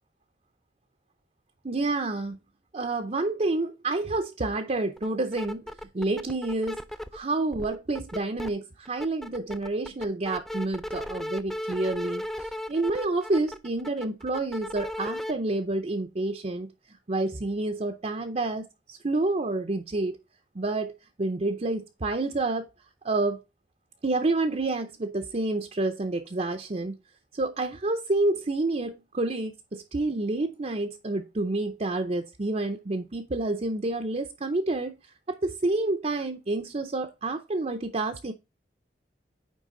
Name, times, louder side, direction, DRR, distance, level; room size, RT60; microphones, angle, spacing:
voice 1, 1.6-2.4 2.7-5.6 5.9-6.8 7.1-16.7 17.1-20.2 20.5-20.9 21.2-22.7 23.0-23.4 24.0-27.0 27.3-38.3, right 2 dB, 35° right, 0.6 m, -29 dB
sound 1, 5.0-5.1 5.3-7.2 7.5-8.5 8.9-15.3, left 1 dB, ahead, 0.4 m, -35 dB
9.3 x 3.5 x 3.7 m
head